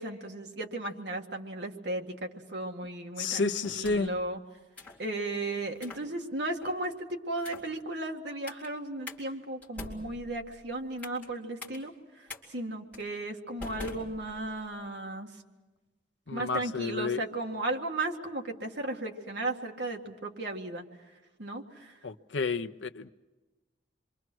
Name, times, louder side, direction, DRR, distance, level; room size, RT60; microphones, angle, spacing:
voice 1, 0.0-4.4 5.0-15.3 16.3-20.9 21.4-21.9, right 2 dB, 65° right, 2.0 m, -35 dB
voice 2, 3.2-4.1 16.3-17.2 22.0-23.1, left 4 dB, 80° left, 0.7 m, -31 dB
sound 1, 3.6-4.2 4.8-5.0 5.7-6.1 6.6-6.9 7.4-7.8 8.5-8.7 9.1-9.2 9.6-11.3 11.6-11.8 12.3-12.4 12.9-13.1 13.6-14.7, left 2 dB, 10° left, 3.7 m, -45 dB
27.5 x 24.0 x 6.3 m
head